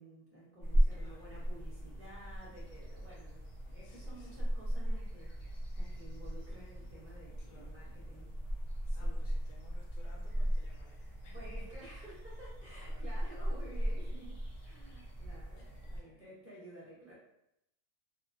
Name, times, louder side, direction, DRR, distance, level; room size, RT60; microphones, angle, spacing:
voice 1, 0.0-8.3 8.9-9.2 11.3-17.1, right 1 dB, 15° right, -9 dB, 0.5 m, -53 dB
sound 1, 0.6-16.0, equal, 50° left, 0.7 m, -37 dB
voice 2, 0.9-1.3 3.8-4.4 7.4-7.8 8.9-11.5 12.7-13.1 15.6-16.4, left 1 dB, 80° left, -1 dB, 1.2 m, -61 dB
2.9 x 2.1 x 2.5 m, 0.83 s
omnidirectional pair, 1.8 m